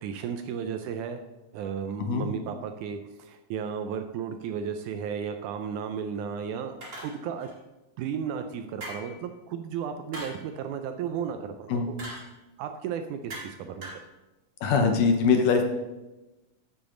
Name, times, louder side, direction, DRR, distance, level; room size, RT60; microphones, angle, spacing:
voice 1, 0.0-1.2 1.5-7.5 8.0-12.0 12.6-13.9, right 7 dB, 80° right, 7 dB, 1.9 m, -34 dB
sound 1, 6.8-7.5 8.8-9.2 10.1-10.5 12.0-12.3 13.3-13.6 13.8-14.1, equal, 30° right, 1.8 m, -40 dB
voice 2, 14.6-15.6, left 5 dB, 75° left, 5 dB, 2.5 m, -22 dB
14.0 x 7.0 x 3.8 m, 1.1 s
omnidirectional pair, 3.9 m